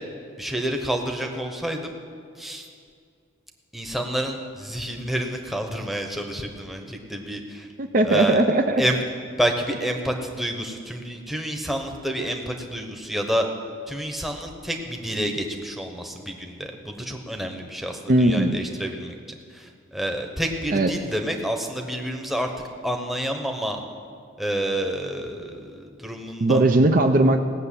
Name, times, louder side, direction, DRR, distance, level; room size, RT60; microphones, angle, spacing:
voice 1, 0.4-2.0 2.4-2.7 3.7-7.7 8.0-8.4 8.8-9.0 9.3-13.5 13.9-22.5 22.8-23.8 24.4-26.6, right 1 dB, ahead, 3 dB, 1.0 m, -29 dB
voice 2, 7.8-8.8 18.1-18.6 20.7-20.9 26.4-27.4, right 2 dB, 40° right, 5 dB, 0.6 m, -18 dB
17.5 x 6.7 x 8.4 m, 2.3 s
head